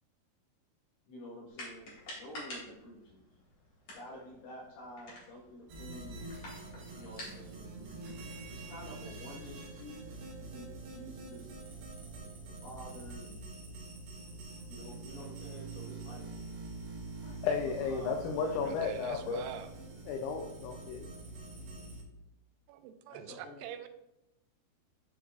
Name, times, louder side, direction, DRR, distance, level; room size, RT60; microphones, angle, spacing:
voice 1, 1.1-3.2 3.9-6.2 6.9-7.7 8.5-10.1 10.5-11.5 12.5-13.5 14.7-16.3 17.6-19.0 23.1-23.7, left 1 dB, 75° left, -4 dB, 3.8 m, -49 dB
sound 1, 1.5-8.9, left 1 dB, 55° left, 1.8 m, -50 dB
sound 2, 5.7-22.0, right 3 dB, 70° right, 2.9 m, -45 dB
voice 2, 17.2-19.5 20.1-21.1, left 5 dB, 90° left, 3 dB, 2.6 m, -34 dB
voice 3, 18.6-19.7 22.7-23.9, right 9 dB, 85° right, 9 dB, 3.1 m, -45 dB
10.5 x 4.6 x 2.5 m, 0.87 s
omnidirectional pair, 5.9 m